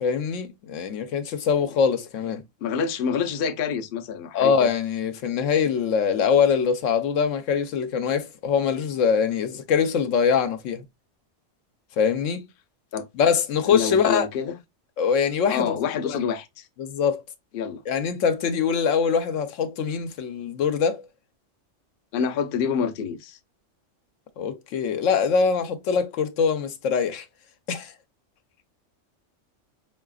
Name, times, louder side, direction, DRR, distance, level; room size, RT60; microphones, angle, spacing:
voice 1, 0.0-2.4 4.3-10.8 12.0-12.4 13.1-14.3 15.0-15.8 16.0-16.2 16.8-17.2 17.9-21.0 24.4-27.3 27.7-27.9, left 6 dB, 80° left, 1.0 m, -23 dB
voice 2, 2.6-4.7 12.9-13.1 13.7-14.5 15.5-16.7 17.5-17.8 22.1-23.4, left 6 dB, 60° left, 0.6 m, -27 dB
4.7 x 2.8 x 2.3 m
omnidirectional pair, 1.3 m